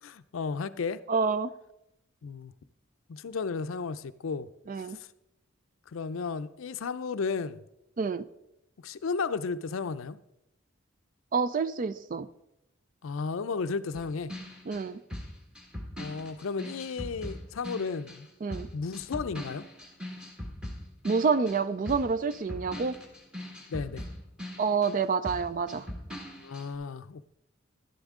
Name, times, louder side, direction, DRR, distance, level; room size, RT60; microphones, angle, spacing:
voice 1, 0.0-1.0 2.2-2.5 3.1-4.5 4.8-5.1 5.9-7.6 8.8-10.2 13.0-14.3 16.0-18.3 18.7-19.7 23.7-24.1 26.4-27.3, left 4 dB, 75° left, 0.5 m, -33 dB
voice 2, 1.1-1.5 4.7-5.0 8.0-8.3 11.3-12.3 14.7-15.0 18.4-18.7 21.0-23.0 24.6-25.9, right 5 dB, 40° right, 0.3 m, -28 dB
sound 1, 13.9-18.2 18.5-25.0 25.2-26.7, left 1 dB, 5° right, 1.5 m, -41 dB
11.5 x 11.0 x 3.6 m
head